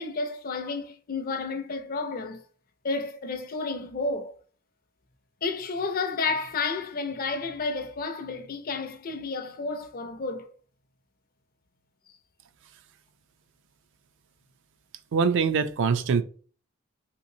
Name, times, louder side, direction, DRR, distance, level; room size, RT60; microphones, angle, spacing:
voice 1, 0.0-2.4 2.8-4.3 5.4-10.5, left 3 dB, 45° left, 0.5 m, -31 dB
voice 2, 15.1-16.2, right 5 dB, 60° right, 0.3 m, -23 dB
3.2 x 2.9 x 2.6 m
head